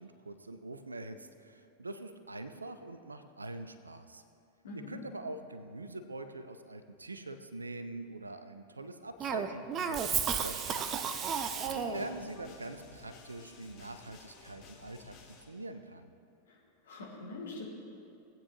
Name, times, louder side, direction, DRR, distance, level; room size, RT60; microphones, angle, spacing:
voice 1, 0.0-4.2 4.9-11.0 11.6-15.2 15.5-16.1, right 2 dB, 80° right, 10 dB, 0.6 m, -44 dB
voice 2, 4.6-5.0 11.8-12.0 16.5-16.6 16.8-17.6, left 3 dB, 65° left, -4 dB, 2.5 m, -44 dB
Cough, 9.2-12.1, right 7 dB, 30° right, 0.6 m, -33 dB
sound 1, 10.1-15.4, left 4 dB, 35° left, 2.2 m, -55 dB
18.0 x 9.0 x 2.9 m, 2.8 s
figure-of-eight pair, 90°, 0 cm